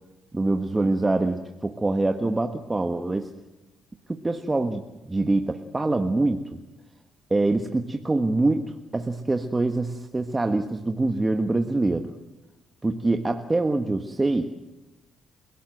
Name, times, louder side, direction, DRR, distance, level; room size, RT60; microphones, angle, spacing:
voice 1, 0.3-3.3 4.1-6.5 7.3-12.1 12.8-14.5, right 2 dB, 20° right, 5 dB, 1.4 m, -25 dB
29.5 x 17.5 x 7.9 m, 1.0 s
cardioid pair, 90°, 0 cm